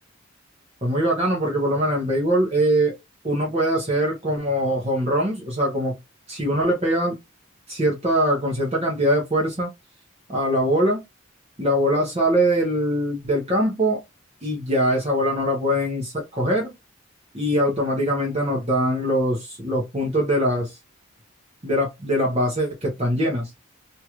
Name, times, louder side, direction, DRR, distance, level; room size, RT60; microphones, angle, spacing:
voice 1, 0.8-2.9 3.2-6.0 6.3-7.2 7.7-9.7 10.3-11.0 11.6-14.0 14.4-16.7 17.3-20.8 21.6-23.5, equal, 30° right, 1.0 m, -22 dB
3.0 x 2.8 x 2.4 m
head